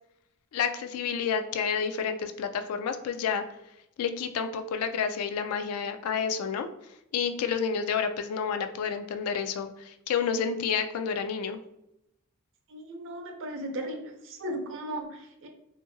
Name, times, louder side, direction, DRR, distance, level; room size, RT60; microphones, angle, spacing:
voice 1, 0.5-3.5 4.0-6.7 7.1-11.6, left 6 dB, 80° left, 11 dB, 0.3 m, -29 dB
voice 2, 12.7-15.5, right 1 dB, 60° right, 4 dB, 0.5 m, -36 dB
2.7 x 2.5 x 2.6 m, 0.84 s
head